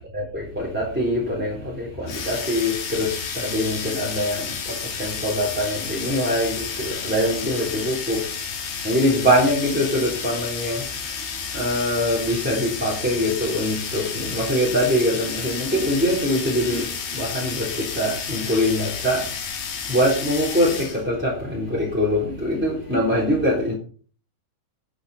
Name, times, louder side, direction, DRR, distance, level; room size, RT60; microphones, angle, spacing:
voice 1, 0.1-8.3 8.8-10.9 11.5-19.3 19.9-23.7, equal, 5° right, 2.5 m, -23 dB
sound 1, 2.1-21.0, left 6 dB, 65° left, 4.3 m, -31 dB
11.5 x 8.8 x 4.3 m
omnidirectional pair, 5.6 m